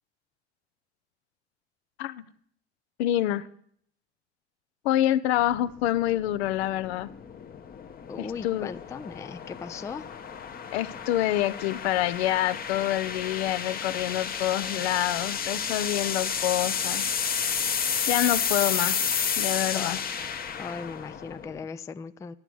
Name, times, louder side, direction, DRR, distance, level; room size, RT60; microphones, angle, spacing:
voice 1, 3.0-3.5 4.8-7.1 8.2-8.7 10.7-17.0 18.1-19.0 19.4-20.0, left 13 dB, 70° left, 0.6 m, -27 dB
sound 1, 5.4-21.7, left 7 dB, 25° left, 0.8 m, -31 dB
voice 2, 8.1-10.1 19.7-20.0 20.6-22.3, left 5 dB, 10° left, 0.3 m, -38 dB
11.0 x 8.0 x 6.0 m
hypercardioid pair, 80°, 33 cm